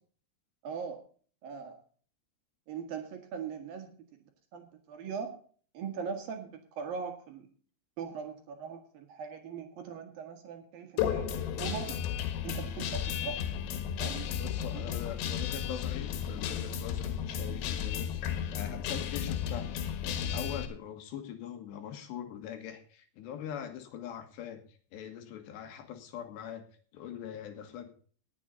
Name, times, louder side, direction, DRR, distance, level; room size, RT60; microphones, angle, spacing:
voice 1, 0.6-1.0 1.4-1.8 2.7-4.2 4.5-5.4 5.7-7.5 8.0-12.0 12.4-13.5 14.0-14.3 14.7-15.0, right 6 dB, 60° right, 5 dB, 3.0 m, -40 dB
Guitar, 11.0-20.7, left 8 dB, 90° left, 3.8 m, -34 dB
voice 2, 14.4-18.2 18.5-24.6 24.9-26.6 26.9-27.9, left 9 dB, 75° left, 7 dB, 3.7 m, -42 dB
19.0 x 7.9 x 4.0 m, 0.43 s
omnidirectional pair, 5.1 m